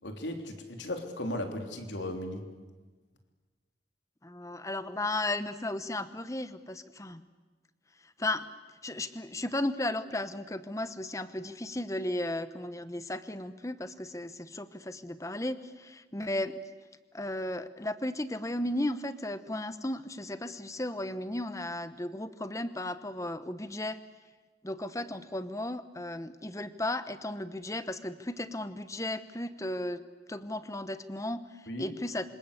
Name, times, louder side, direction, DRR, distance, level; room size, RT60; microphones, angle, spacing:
voice 1, 0.0-2.5 31.7-31.9, left 1 dB, 85° left, 5 dB, 3.4 m, -36 dB
voice 2, 4.2-7.2 8.2-8.5 8.8-16.6 17.1-24.0 24.6-30.0 30.3-31.5 31.8-32.3, left 1 dB, 15° left, 12 dB, 1.1 m, -35 dB
26.5 x 25.5 x 8.2 m, 1.4 s
head